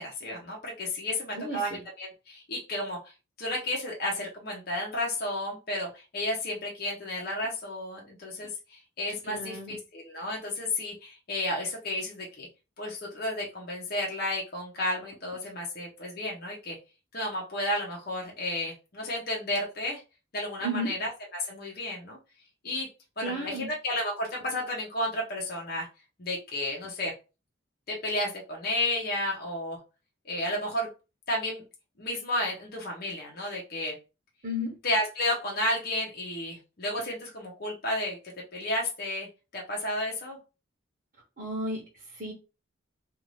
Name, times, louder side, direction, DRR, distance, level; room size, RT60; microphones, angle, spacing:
voice 1, 0.0-3.1 3.4-12.5 12.8-16.8 17.1-20.0 20.3-22.2 22.6-22.9 23.2-25.9 26.2-27.1 27.9-29.8 30.3-30.9 31.3-31.6 32.0-33.9 34.8-38.2 38.5-39.3 39.5-40.4, left 1 dB, 45° left, -2 dB, 0.8 m, -32 dB
voice 2, 1.3-1.8 9.3-9.8 20.6-20.9 23.2-23.7 34.4-34.8 41.4-41.8 42.2-42.3, equal, 45° right, -3 dB, 0.9 m, -33 dB
2.6 x 2.5 x 3.2 m, 0.30 s
head